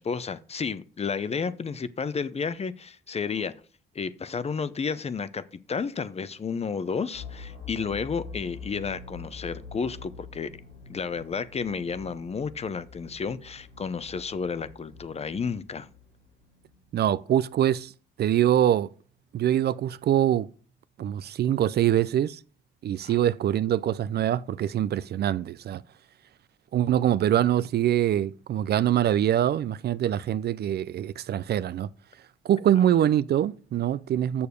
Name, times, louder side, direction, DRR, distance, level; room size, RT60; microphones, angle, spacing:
voice 1, 0.0-3.5 3.9-10.5 10.9-15.9 23.0-23.2, left 5 dB, 30° left, 0.7 m, -32 dB
sound 1, 7.1-17.0, left 5 dB, 80° left, 4.1 m, -45 dB
voice 2, 16.9-17.9 18.2-18.9 19.3-20.5 21.0-22.4 22.8-25.8 26.7-31.9 32.4-34.5, right 11 dB, 55° right, 0.4 m, -24 dB
7.0 x 6.7 x 5.2 m
cardioid pair, 90°, 20 cm